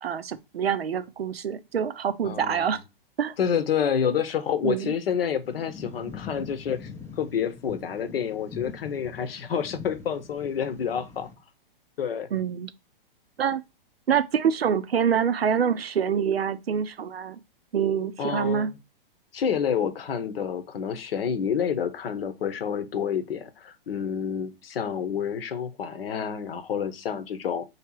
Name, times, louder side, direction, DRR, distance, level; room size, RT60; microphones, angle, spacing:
voice 1, 0.0-2.8 3.2-3.3 4.6-4.9 12.3-12.7 13.4-13.6 14.1-17.4 17.7-18.7, right 7 dB, 90° right, 0.6 m, -26 dB
voice 2, 2.2-2.7 3.4-6.9 7.2-11.3 12.0-12.3 18.2-18.7 19.3-27.7, left 7 dB, 75° left, 0.8 m, -28 dB
sound 1, 5.4-11.3, left 5 dB, 10° left, 0.4 m, -43 dB
3.2 x 2.8 x 4.5 m
hypercardioid pair, 125°, 29 cm